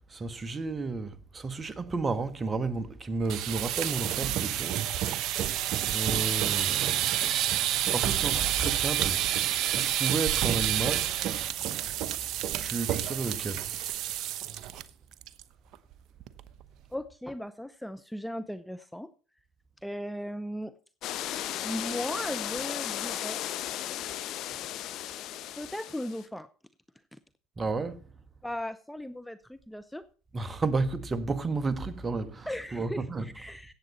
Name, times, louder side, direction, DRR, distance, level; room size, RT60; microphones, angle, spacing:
voice 1, 0.1-5.3 5.9-7.1 7.9-9.3 9.7-11.2 12.6-13.7 27.6-28.0 30.3-33.4, right 3 dB, 25° right, 1.5 m, -32 dB
sound 1, 3.2-14.8 15.1-15.4 15.7-15.8 16.2-16.6, right 12 dB, 60° right, 0.9 m, -29 dB
voice 2, 16.9-19.1 19.8-20.7 21.6-23.4 25.5-26.5 27.1-27.2 28.4-30.0 32.5-33.7, equal, 5° left, 0.8 m, -37 dB
sound 2, 21.0-26.3, left 12 dB, 60° left, 1.2 m, -35 dB
16.5 x 7.9 x 4.3 m
hypercardioid pair, 80°, 0 cm